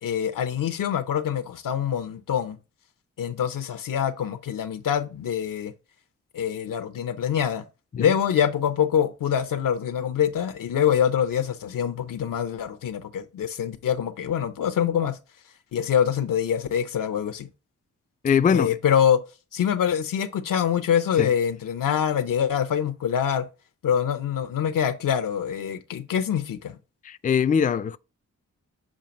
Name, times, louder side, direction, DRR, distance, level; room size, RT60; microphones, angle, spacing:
voice 1, 0.0-2.6 3.2-5.7 6.3-7.6 8.0-15.2 15.7-17.5 18.5-19.2 19.5-23.5 23.8-26.8, left 8 dB, 85° left, 0.7 m, -25 dB
voice 2, 18.2-18.8 21.2-21.3 27.0-28.0, left 7 dB, 25° left, 0.4 m, -22 dB
7.3 x 2.5 x 5.1 m
cardioid pair, 65°, 32 cm